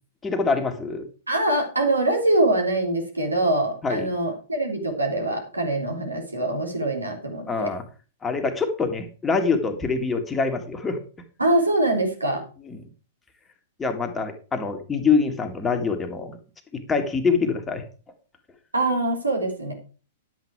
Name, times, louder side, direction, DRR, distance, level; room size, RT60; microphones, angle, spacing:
voice 1, 0.2-1.0 3.8-4.1 7.5-7.8 8.2-11.0 12.7-12.8 13.8-16.4 16.7-17.8, left 4 dB, 15° left, 5 dB, 1.8 m, -25 dB
voice 2, 1.3-7.7 11.4-12.4 18.7-19.7, right 2 dB, 90° right, 2 dB, 3.2 m, -23 dB
10.5 x 8.5 x 4.7 m, 0.37 s
figure-of-eight pair, 105°, 0 cm